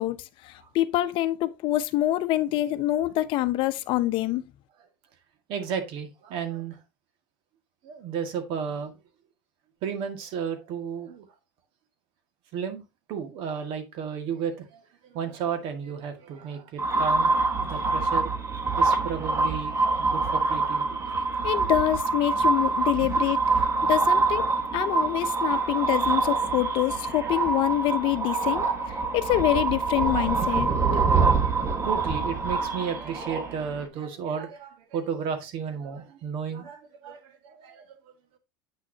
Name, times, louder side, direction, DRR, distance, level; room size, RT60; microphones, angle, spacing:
voice 1, 0.0-4.4 21.4-23.4 23.9-30.7, left 15 dB, 55° left, 0.7 m, -26 dB
voice 2, 5.5-6.8 7.8-8.9 9.8-11.3 12.5-12.8 13.1-14.8 15.1-18.3 18.8-20.8 31.1-38.0, right 7 dB, 55° right, 1.8 m, -33 dB
sound 1, 16.8-33.8, right 3 dB, 25° right, 1.4 m, -25 dB
8.5 x 6.1 x 2.8 m
hypercardioid pair, 95°, 11 cm